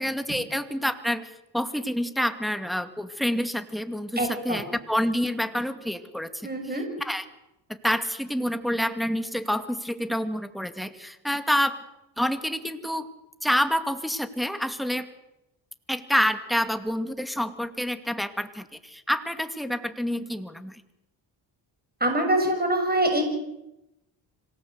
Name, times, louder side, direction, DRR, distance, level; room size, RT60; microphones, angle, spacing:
voice 1, 0.0-7.3 7.7-11.8 12.2-13.1 13.4-15.1 15.9-20.8, equal, ahead, 8 dB, 2.3 m, -28 dB
voice 2, 4.2-4.6 6.4-6.9 22.0-23.2, right 1 dB, 20° right, 4 dB, 6.7 m, -24 dB
26.0 x 18.0 x 8.1 m, 0.91 s
cardioid pair, 75°, 49 cm